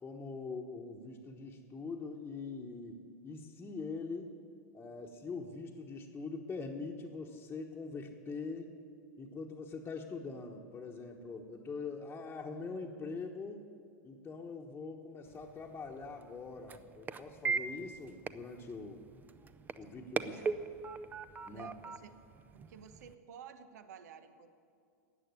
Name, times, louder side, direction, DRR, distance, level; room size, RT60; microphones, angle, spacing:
voice 1, 0.0-4.3 4.7-8.7 9.2-13.6 14.0-19.0 19.8-20.4 21.4-21.8, left 4 dB, 15° left, -3 dB, 1.2 m, -43 dB
sound 1, 15.3-23.1, right 5 dB, 20° right, 0.6 m, -41 dB
voice 2, 20.2-20.7 21.5-22.2 22.5-24.5, right 7 dB, 70° right, 10 dB, 1.1 m, -53 dB
13.5 x 8.7 x 9.6 m, 2.3 s
hypercardioid pair, 115°, 9 cm